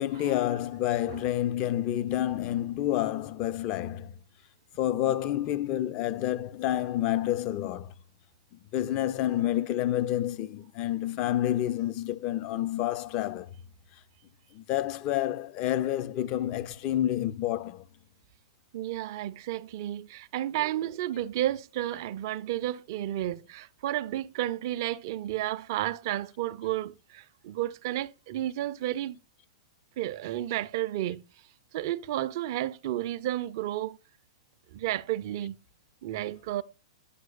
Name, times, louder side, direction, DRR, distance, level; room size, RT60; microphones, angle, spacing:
voice 1, 0.0-4.1 4.8-7.9 8.7-13.5 14.5-17.8, left 13 dB, 35° left, 0.4 m, -29 dB
voice 2, 18.7-29.2 30.0-31.3 31.7-34.0 34.7-35.6 36.0-36.6, right 13 dB, 50° right, 0.4 m, -32 dB
9.9 x 6.1 x 2.3 m
figure-of-eight pair, 105°, 3 cm